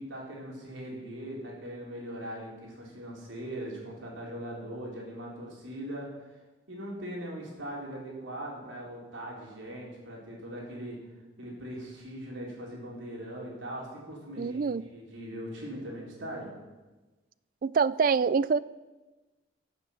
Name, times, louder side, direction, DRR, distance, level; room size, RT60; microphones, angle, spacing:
voice 1, 0.0-6.1 6.7-11.0 11.4-16.5, right 1 dB, 80° right, -2 dB, 4.0 m, -40 dB
voice 2, 14.4-14.9 17.6-18.6, right 5 dB, 45° right, 18 dB, 0.3 m, -25 dB
15.0 x 7.4 x 7.1 m, 1.2 s
head